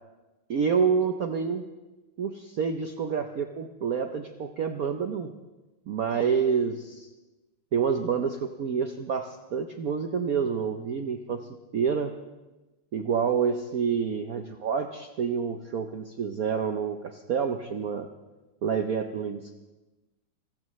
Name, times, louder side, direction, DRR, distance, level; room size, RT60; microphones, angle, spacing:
voice 1, 0.5-1.6 2.2-5.3 5.9-7.1 7.7-11.5 11.7-12.1 12.9-18.1 18.6-19.6, right 6 dB, 65° right, 6 dB, 0.9 m, -28 dB
27.5 x 15.0 x 3.1 m, 1.1 s
omnidirectional pair, 2.4 m